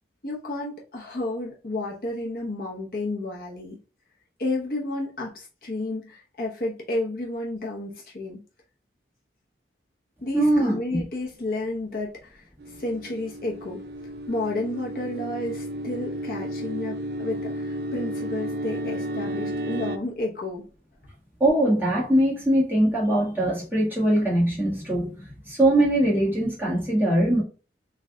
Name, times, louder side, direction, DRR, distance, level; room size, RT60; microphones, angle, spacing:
voice 1, 0.2-3.8 4.4-8.4 10.2-12.4 12.8-13.8 14.3-20.6, left 2 dB, 55° left, 0.9 m, -31 dB
voice 2, 10.3-11.0 21.4-27.4, right 1 dB, 10° right, 1.4 m, -22 dB
sound 1, 12.6-20.0, right 1 dB, 60° right, 0.4 m, -32 dB
3.3 x 2.4 x 3.6 m
head